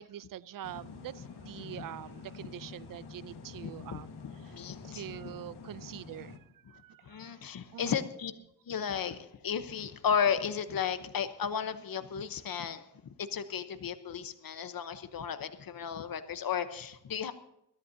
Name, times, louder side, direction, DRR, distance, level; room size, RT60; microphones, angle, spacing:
voice 1, 0.0-4.1 4.4-4.5 4.8-7.4 7.7-8.0, right 11 dB, 60° right, 18 dB, 0.5 m, -45 dB
sound 1, 0.6-6.4, left 4 dB, 90° left, 1.7 m, -48 dB
voice 2, 3.5-5.2 7.0-8.3 8.7-17.3, left 7 dB, 65° left, 10 dB, 1.0 m, -34 dB
22.0 x 13.0 x 2.7 m, 0.79 s
wide cardioid pair, 165°, 38 cm